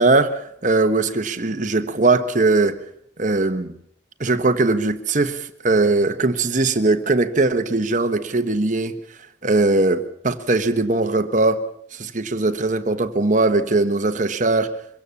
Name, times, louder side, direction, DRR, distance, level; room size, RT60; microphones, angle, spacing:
voice 1, 0.0-2.8 3.2-3.7 4.2-8.9 9.4-11.6 11.9-14.7, right 3 dB, 45° right, 1.2 m, -20 dB
23.5 x 16.5 x 7.0 m
head